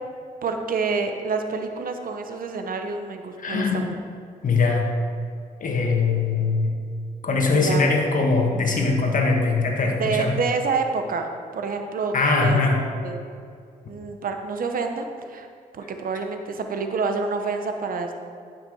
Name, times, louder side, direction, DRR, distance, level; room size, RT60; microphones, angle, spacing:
voice 1, 0.4-4.0 7.5-7.9 10.0-12.1 12.4-12.6 13.0-13.2 13.9-15.5 15.7-18.1, right 4 dB, 65° right, 5 dB, 1.0 m, -28 dB
voice 2, 3.4-3.8 4.4-4.9 5.6-6.7 7.2-10.3 12.1-12.8, left 3 dB, 55° left, 1 dB, 1.7 m, -21 dB
10.5 x 6.0 x 4.7 m, 2.3 s
supercardioid pair, 55°, 16 cm